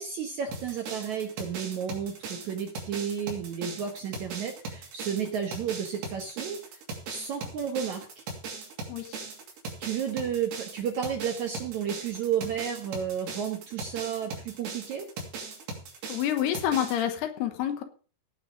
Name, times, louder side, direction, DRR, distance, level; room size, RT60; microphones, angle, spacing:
voice 1, 0.0-8.2 9.8-15.1, right 8 dB, 65° right, 4 dB, 1.9 m, -32 dB
sound 1, 0.5-17.0, right 3 dB, 85° right, 5.0 m, -39 dB
voice 2, 8.9-9.2 16.1-17.8, left 10 dB, 75° left, 8 dB, 3.2 m, -28 dB
18.0 x 6.2 x 5.1 m, 0.39 s
omnidirectional pair, 4.8 m